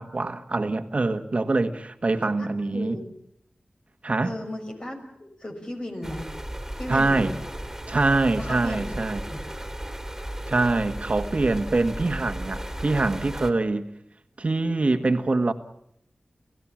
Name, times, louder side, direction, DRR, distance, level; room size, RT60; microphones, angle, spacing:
voice 1, 0.0-3.0 4.0-4.4 6.9-7.3 7.9-9.2 10.5-13.9 14.4-15.5, right 3 dB, 55° right, 1.7 m, -24 dB
voice 2, 4.2-6.3 6.7-7.3 8.4-8.9 9.2-9.4, left 1 dB, 40° left, 6.2 m, -35 dB
sound 1, 6.0-13.5, right 1 dB, 15° right, 3.2 m, -35 dB
30.0 x 16.0 x 7.5 m
cardioid pair, 45°, 3 cm